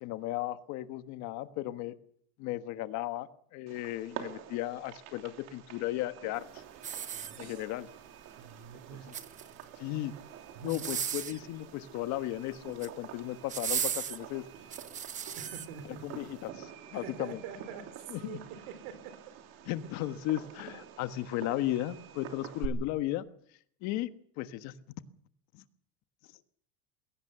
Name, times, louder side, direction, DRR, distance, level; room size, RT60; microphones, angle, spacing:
voice 1, 0.0-1.9 2.4-6.6 7.4-7.9 8.9-9.1 9.8-10.1 10.6-14.5 16.0-17.4 18.1-18.4 19.7-23.2 23.8-24.1 24.4-24.7 25.5-25.6, left 15 dB, 60° left, 10 dB, 1.4 m, -35 dB
Fireworks, 3.7-22.7, right 10 dB, 55° right, 3.1 m, -48 dB
sound 1, 6.8-7.8 8.9-9.7 10.6-11.4 12.5-13.0 13.5-15.7 16.2-16.4, right 8 dB, 25° right, 0.9 m, -36 dB
voice 2, 7.1-7.7 8.4-9.1 10.5-10.8 15.3-16.1 16.9-19.3, right 7 dB, 80° right, 12 dB, 4.0 m, -46 dB
22.0 x 17.5 x 6.9 m, 0.63 s
cardioid pair, 165°, 32 cm